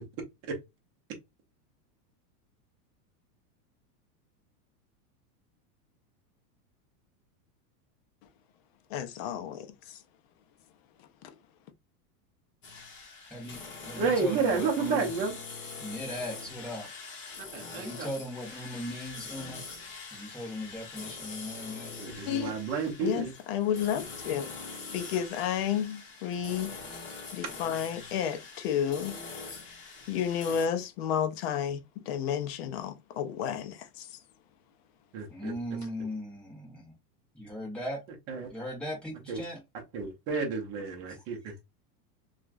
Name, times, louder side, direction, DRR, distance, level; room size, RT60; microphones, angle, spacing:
voice 1, 8.9-10.0 11.2-11.3 22.3-22.5 23.0-24.5 24.9-26.8 27.3-29.4 30.1-31.8 32.1-34.2, left 9 dB, 45° left, 0.5 m, -31 dB
sound 1, 12.6-30.7, left 4 dB, 25° left, 1.0 m, -44 dB
voice 2, 13.3-15.1 15.8-16.9 17.7-19.6 20.1-21.9 35.3-36.9 37.3-38.0 38.5-39.6 41.1-41.2, left 1 dB, ahead, 0.9 m, -38 dB
voice 3, 14.0-15.4 17.5-18.1 22.0-23.3 35.1-35.5 38.3-38.5 39.3-39.4 39.9-41.6, right 5 dB, 30° right, 0.7 m, -30 dB
2.9 x 2.4 x 2.4 m
supercardioid pair, 155°, 47 cm